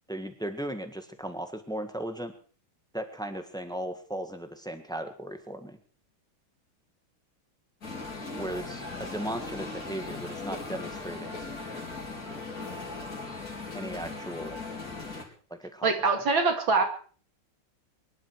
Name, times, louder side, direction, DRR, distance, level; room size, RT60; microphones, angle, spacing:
voice 1, 0.1-2.3 2.9-5.8 8.3-11.4 13.7-14.6 15.6-15.9, right 1 dB, ahead, 7 dB, 1.5 m, -36 dB
sound 1, 7.8-15.2, left 3 dB, 45° left, 4.6 m, -38 dB
voice 2, 15.8-16.8, right 4 dB, 65° right, 4 dB, 3.0 m, -24 dB
24.0 x 11.5 x 4.7 m, 0.43 s
omnidirectional pair, 2.3 m